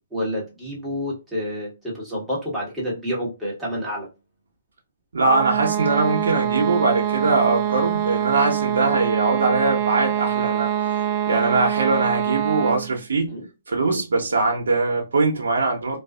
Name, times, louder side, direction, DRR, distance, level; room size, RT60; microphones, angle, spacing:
voice 1, 0.1-4.1 8.8-9.0 13.3-13.5 13.9-14.0, equal, 5° right, 1.3 m, -29 dB
voice 2, 5.1-10.7 11.3-13.3 13.7-16.0, right 3 dB, 80° right, 0.7 m, -21 dB
sound 1, 5.3-13.0, right 10 dB, 35° right, 0.3 m, -24 dB
2.5 x 2.4 x 2.3 m
hypercardioid pair, 150°, 0 cm